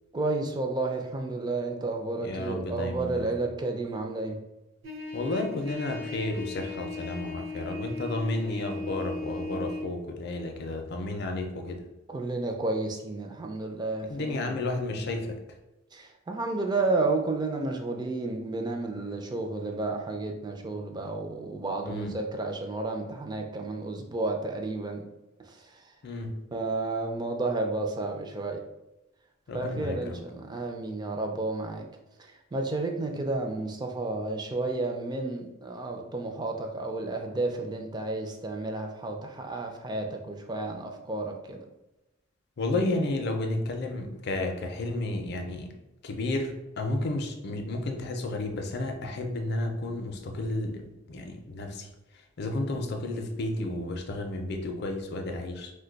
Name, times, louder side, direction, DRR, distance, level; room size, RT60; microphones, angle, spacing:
voice 1, 0.1-4.4 12.1-14.6 14.9-15.1 15.9-25.0 25.5-25.6 26.5-28.6 29.5-31.8 32.5-41.6, right 2 dB, 20° right, 3 dB, 0.3 m, -31 dB
voice 2, 2.2-3.3 5.1-11.8 14.1-15.3 21.8-22.1 26.0-26.3 29.5-30.2 42.6-45.7 46.0-46.5 46.8-50.8 51.1-51.9 52.4-55.7, left 2 dB, 55° left, 4 dB, 0.5 m, -32 dB
Trumpet, 4.8-9.9, left 3 dB, 65° right, 0.6 m, -37 dB
2.6 x 2.2 x 3.8 m, 0.97 s
head